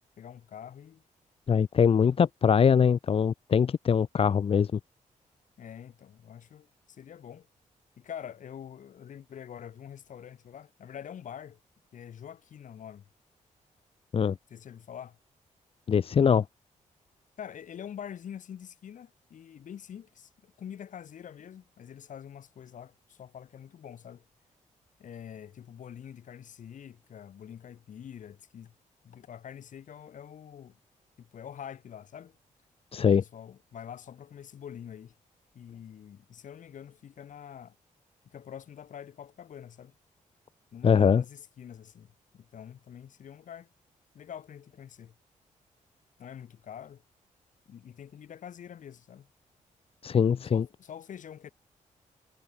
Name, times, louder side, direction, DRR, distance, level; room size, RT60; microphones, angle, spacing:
voice 1, 0.2-1.0 5.6-7.5 8.0-11.6 11.9-13.0 14.5-15.2 17.4-24.2 25.0-28.7 29.0-30.8 31.2-32.4 33.0-35.1 35.5-37.7 38.2-39.9 40.7-43.7 44.1-45.1 46.2-47.0 47.7-49.3 50.5-51.5, left 9 dB, 70° left, 5.1 m, -45 dB
voice 2, 1.5-4.8 14.1-14.3 15.9-16.4 32.9-33.2 40.8-41.2 50.0-50.6, left 7 dB, 45° left, 0.9 m, -22 dB
wide cardioid pair, 130°, 14 cm